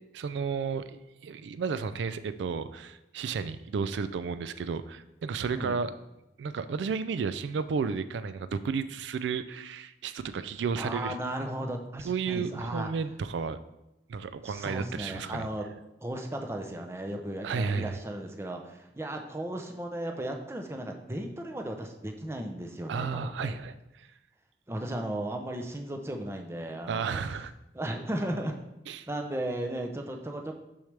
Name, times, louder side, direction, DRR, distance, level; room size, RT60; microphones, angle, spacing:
voice 1, 0.1-5.9 6.4-11.2 12.0-13.6 14.1-15.5 17.4-18.0 22.9-24.1 26.9-27.5 28.9-29.1, right 5 dB, 90° right, 13 dB, 0.3 m, -32 dB
voice 2, 10.8-12.9 14.4-15.7 16.0-23.6 24.7-27.2 27.7-28.5 29.1-30.5, right 1 dB, 15° right, 3 dB, 0.6 m, -35 dB
6.3 x 6.3 x 3.3 m, 0.90 s
head